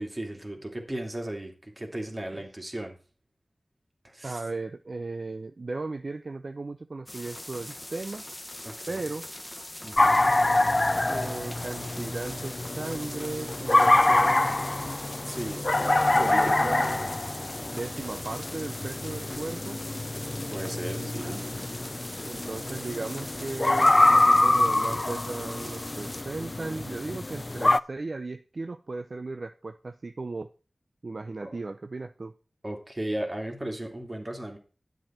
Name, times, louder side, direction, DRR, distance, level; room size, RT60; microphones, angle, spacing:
voice 1, 0.0-3.0 4.0-4.4 8.6-9.1 9.8-10.4 15.2-16.6 20.5-21.4 31.4-31.6 32.6-34.6, right 1 dB, 35° right, 3 dB, 2.5 m, -36 dB
voice 2, 4.2-8.2 8.9-9.3 11.1-14.5 16.2-17.1 17.7-19.8 21.0-21.4 22.3-30.5 31.0-32.3, right 3 dB, 65° right, 9 dB, 0.5 m, -36 dB
sound 1, 7.1-26.2, left 1 dB, 20° left, 1.1 m, -42 dB
sound 2, 10.0-27.8, left 2 dB, 40° left, 0.4 m, -25 dB
10.5 x 7.6 x 4.4 m, 0.36 s
cardioid pair, 40°, 0 cm